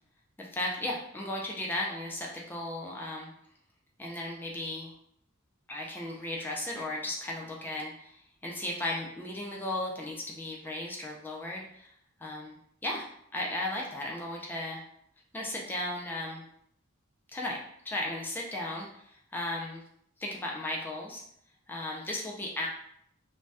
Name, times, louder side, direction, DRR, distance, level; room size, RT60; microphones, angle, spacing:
voice 1, 0.4-3.3 4.0-4.9 5.7-11.9 12.2-12.6 12.8-13.1 13.3-14.8 15.3-16.4 17.3-17.6 17.8-19.8 20.2-21.2 21.7-22.7, left 1 dB, 10° left, -2 dB, 0.4 m, -35 dB
2.6 x 2.2 x 3.3 m, 0.70 s
head